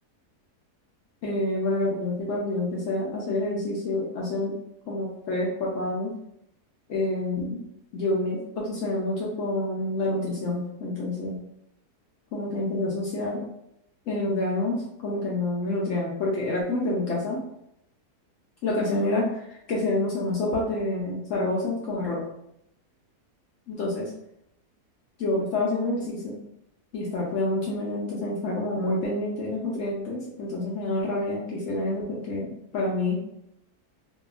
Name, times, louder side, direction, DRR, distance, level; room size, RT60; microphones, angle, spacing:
voice 1, 1.2-4.5 4.9-6.1 6.9-7.6 7.9-11.4 12.3-13.4 14.1-17.4 18.6-22.2 23.7-24.1 25.2-26.4 26.9-33.2, left 2 dB, 70° left, -4 dB, 0.8 m, -28 dB
2.7 x 2.3 x 2.3 m, 0.78 s
omnidirectional pair, 1.7 m